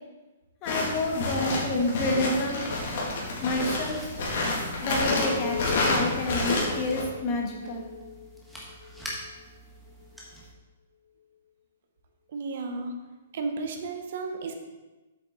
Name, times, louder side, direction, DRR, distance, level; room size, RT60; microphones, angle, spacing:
voice 1, 0.6-2.6 3.4-4.1 4.8-7.9, left 2 dB, 25° left, 0 dB, 1.5 m, -29 dB
sound 1, 0.7-7.0, left 2 dB, 50° left, 2.6 m, -29 dB
sound 2, 3.4-10.5, equal, ahead, 1.4 m, -45 dB
Chink clink, 5.1-10.3, left 9 dB, 75° left, 1.7 m, -39 dB
voice 2, 12.3-13.0 13.3-14.5, right 3 dB, 55° right, 5 dB, 1.3 m, -33 dB
8.3 x 7.1 x 4.0 m, 1.2 s
hypercardioid pair, 160°, 0 cm